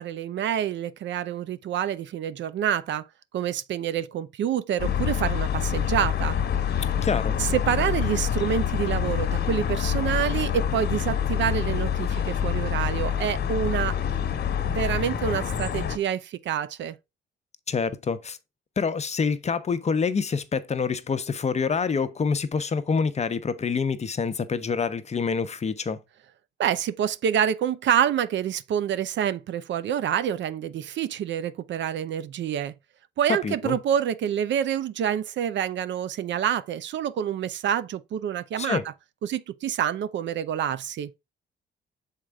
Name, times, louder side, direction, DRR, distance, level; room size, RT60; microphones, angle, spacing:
voice 1, 0.0-3.0 3.3-6.4 7.4-14.0 14.6-17.0 26.6-32.7 33.2-38.8 39.2-41.1, right 9 dB, 65° right, 0.6 m, -27 dB
sound 1, 4.8-16.0, left 9 dB, 55° left, 1.3 m, -26 dB
voice 2, 7.0-7.4 17.7-18.4 18.8-26.0 33.3-33.8 38.6-38.8, left 5 dB, 35° left, 0.8 m, -26 dB
6.5 x 4.4 x 3.5 m
cardioid pair, 90°, 20 cm